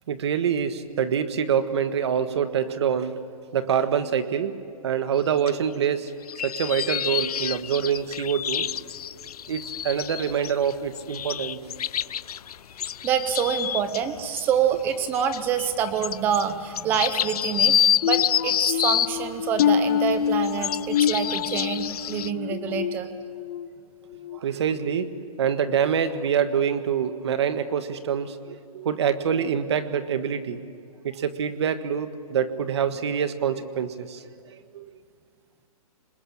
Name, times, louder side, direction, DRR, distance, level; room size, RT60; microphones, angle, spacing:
voice 1, 0.1-3.2 3.5-4.6 4.8-6.1 6.4-8.7 9.5-11.6 22.7-22.8 24.3-30.6 31.0-34.2 34.7-34.9, right 8 dB, 45° right, 10 dB, 1.6 m, -25 dB
sound 1, 5.5-5.6 6.1-14.0 14.4-14.5 14.9-19.1 19.6-22.3, left 9 dB, 90° left, 0.6 m, -28 dB
voice 2, 13.0-17.8 18.0-23.1, right 8 dB, 10° right, 11 dB, 0.8 m, -26 dB
sound 2, 18.0-23.7 24.1-24.4 24.9-25.1, left 8 dB, 20° left, 0.6 m, -27 dB
27.0 x 21.5 x 8.7 m, 2.3 s
hypercardioid pair, 175°, 19 cm